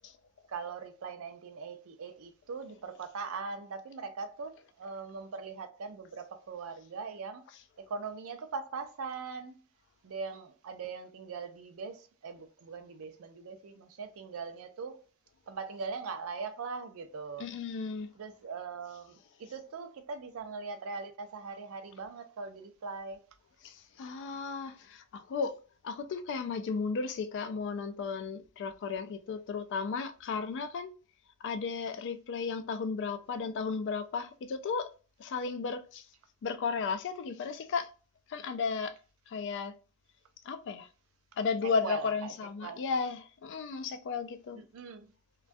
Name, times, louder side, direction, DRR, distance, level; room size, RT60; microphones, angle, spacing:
voice 1, 0.5-7.4 7.9-9.6 10.0-15.0 15.5-17.5 18.2-23.2 41.8-42.3 42.6-42.8 44.6-45.1, right 5 dB, 65° right, 0.4 m, -41 dB
voice 2, 17.4-18.1 23.6-30.9 31.4-34.9 35.2-36.1 36.4-37.9 38.3-39.0 39.3-39.8 40.4-40.9 41.4-44.6, left 5 dB, 55° left, 0.3 m, -34 dB
2.2 x 2.2 x 2.5 m
head